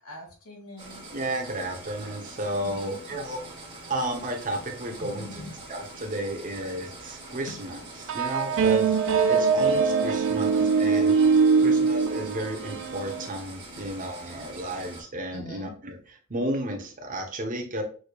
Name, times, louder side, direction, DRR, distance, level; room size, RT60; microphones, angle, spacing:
voice 1, 0.0-1.1 2.6-3.2 4.9-5.6 7.5-7.6 10.1-10.3 11.7-11.8 13.8-13.9 15.3-15.8, left 1 dB, 85° left, 0 dB, 1.9 m, -43 dB
sound 1, 0.8-15.0, right 2 dB, 20° right, 2.1 m, -44 dB
voice 2, 1.1-3.4 3.9-5.4 5.7-9.0 9.3-11.2 11.6-16.0 16.3-17.8, right 1 dB, 40° right, 3 dB, 0.9 m, -33 dB
sound 2, 8.1-13.3, right 5 dB, 60° right, 0.4 m, -22 dB
6.3 x 3.3 x 2.4 m, 0.41 s
head